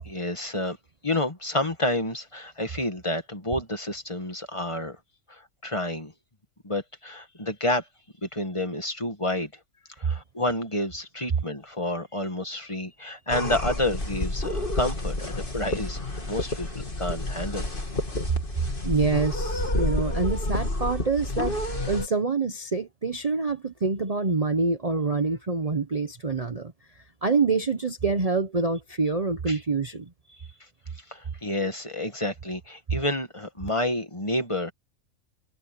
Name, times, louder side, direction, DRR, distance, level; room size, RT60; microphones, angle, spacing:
voice 1, 0.0-0.8 1.0-5.0 5.3-6.1 6.6-7.8 8.2-9.5 10.0-16.0 16.3-17.7 29.5-29.6 31.1-34.7, left 1 dB, 25° left, 1.9 m, -29 dB
sound 1, 13.3-22.1, left 1 dB, 40° left, 3.2 m, -29 dB
voice 2, 18.8-21.6 21.9-26.7 27.2-30.1, right 4 dB, 30° right, 0.9 m, -26 dB
omnidirectional pair, 1.4 m